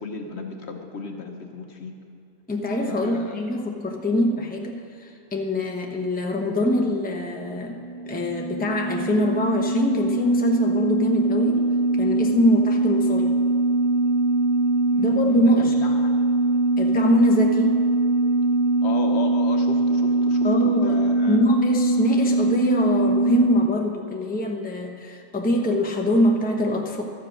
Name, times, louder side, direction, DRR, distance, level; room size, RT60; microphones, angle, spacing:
voice 1, 0.0-2.0 2.9-3.6 14.9-16.2 18.8-21.5, left 3 dB, 60° left, 4 dB, 1.1 m, -35 dB
voice 2, 2.5-7.7 8.1-11.6 11.9-13.4 15.0-15.7 16.8-17.8 20.4-21.0 21.3-27.0, left 1 dB, 10° left, 1 dB, 0.8 m, -24 dB
sound 1, 7.5-23.7, right 2 dB, 60° right, 0.8 m, -22 dB
12.5 x 7.5 x 6.1 m, 2.7 s
omnidirectional pair, 1.4 m